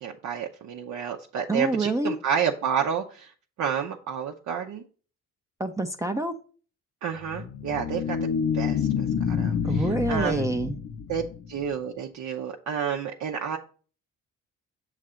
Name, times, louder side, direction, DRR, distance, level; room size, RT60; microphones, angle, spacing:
voice 1, 0.0-3.3 3.6-4.8 7.0-8.3 8.5-10.5 11.1-11.2 11.5-13.6, right 7 dB, 70° right, 1 dB, 0.7 m, -30 dB
voice 2, 1.5-2.1 5.6-6.3 9.6-10.8, right 2 dB, 10° right, 4 dB, 0.5 m, -27 dB
sound 1, 7.2-11.7, left 7 dB, 55° left, 0.6 m, -28 dB
6.6 x 3.3 x 4.9 m, 0.40 s
cardioid pair, 90°, 30 cm